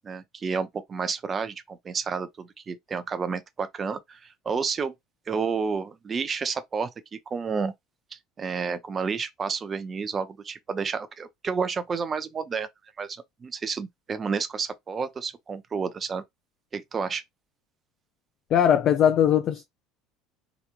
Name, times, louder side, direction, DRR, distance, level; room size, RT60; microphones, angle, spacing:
voice 1, 0.0-4.9 5.3-7.7 8.1-12.7 13.0-16.2 16.7-17.2, right 5 dB, 30° right, 0.6 m, -30 dB
voice 2, 18.5-19.6, left 9 dB, 45° left, 0.5 m, -20 dB
3.3 x 3.0 x 2.4 m
figure-of-eight pair, 65°, 0 cm